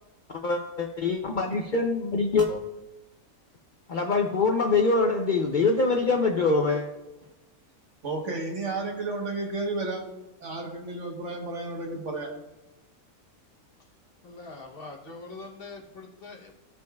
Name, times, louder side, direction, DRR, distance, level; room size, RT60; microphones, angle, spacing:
voice 1, 0.3-2.6 3.9-6.9, left 3 dB, 80° left, 2 dB, 0.4 m, -24 dB
voice 2, 8.0-10.1 10.4-12.3, right 3 dB, 55° right, 1 dB, 1.5 m, -32 dB
voice 3, 14.2-16.5, left 3 dB, 45° left, 0 dB, 1.1 m, -43 dB
15.5 x 5.3 x 2.3 m, 0.99 s
omnidirectional pair, 1.6 m